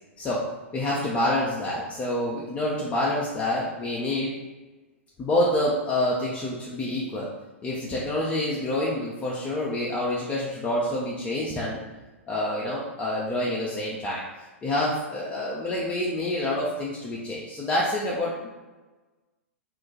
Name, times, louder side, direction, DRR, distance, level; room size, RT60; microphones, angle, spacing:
voice 1, 0.7-4.3 5.2-7.3 7.6-11.8 12.3-14.2 14.6-18.5, left 1 dB, 20° left, -6 dB, 0.5 m, -27 dB
2.4 x 2.2 x 3.9 m, 1.2 s
figure-of-eight pair, 100°, 7 cm